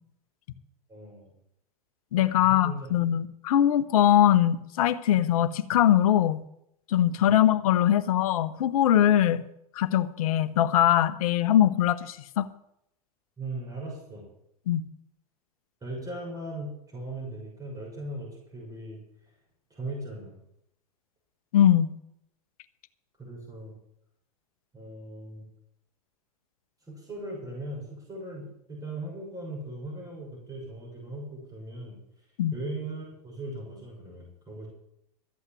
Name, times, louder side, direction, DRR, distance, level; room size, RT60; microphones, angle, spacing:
voice 1, 0.9-1.3 2.4-3.0 7.2-7.4 13.4-14.3 15.8-19.0 19.7-20.4 23.2-23.7 24.7-25.4 26.9-32.0 32.5-34.7, right 2 dB, 15° right, -2 dB, 6.5 m, -38 dB
voice 2, 2.1-6.4 6.9-9.4 9.8-12.5 14.7-14.8 21.5-21.9 32.4-32.5, left 11 dB, 65° left, 14 dB, 1.0 m, -22 dB
13.5 x 8.1 x 7.5 m, 0.76 s
hypercardioid pair, 105°, 20 cm